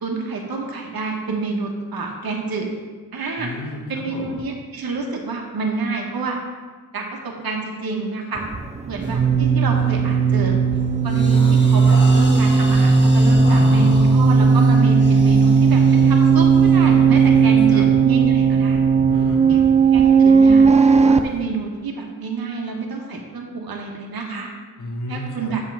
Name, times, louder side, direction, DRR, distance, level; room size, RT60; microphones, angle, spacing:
voice 1, 0.0-2.7 3.1-3.5 3.9-6.4 6.9-8.4 8.9-10.5 11.0-18.8 19.5-19.6 19.9-20.6 20.9-24.5 25.1-25.6, right 4 dB, 75° right, 1 dB, 1.1 m, -28 dB
voice 2, 3.4-4.4 11.3-11.6 13.6-14.0 17.3-17.8 19.0-19.7 24.8-25.5, left 1 dB, 55° left, 1 dB, 1.3 m, -32 dB
sound 1, 8.4-21.2, right 5 dB, 20° right, 0.4 m, -15 dB
sound 2, 9.0-9.2 9.7-10.0 10.5-18.6, left 2 dB, 30° left, 1.3 m, -36 dB
7.0 x 3.7 x 6.0 m, 1.4 s
cardioid pair, 65°, 36 cm